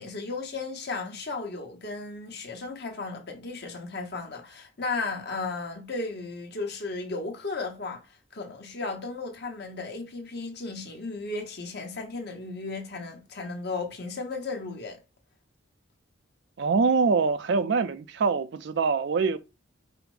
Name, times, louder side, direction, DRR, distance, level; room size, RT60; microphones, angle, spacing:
voice 1, 0.0-15.0, left 3 dB, 50° left, 1.2 m, -35 dB
voice 2, 16.6-19.4, right 4 dB, 55° right, 0.4 m, -24 dB
5.0 x 2.1 x 4.7 m
head